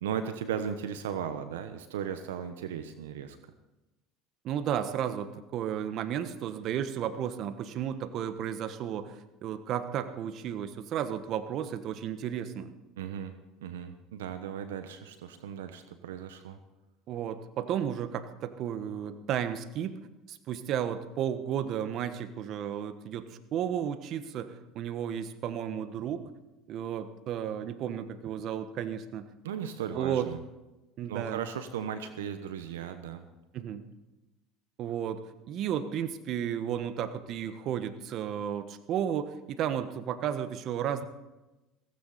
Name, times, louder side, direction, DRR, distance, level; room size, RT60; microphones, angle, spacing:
voice 1, 0.0-3.4 13.0-13.3 13.6-16.6 29.4-30.4 31.1-33.3, right 8 dB, 85° right, 9 dB, 1.1 m, -36 dB
voice 2, 4.4-12.7 17.1-20.0 20.3-26.3 26.7-29.2 29.9-30.3 31.0-31.4 33.5-33.8 34.8-35.2 35.5-41.0, right 9 dB, 55° right, 10 dB, 1.3 m, -33 dB
17.0 x 15.5 x 4.2 m, 1.0 s
hypercardioid pair, 80°, 0 cm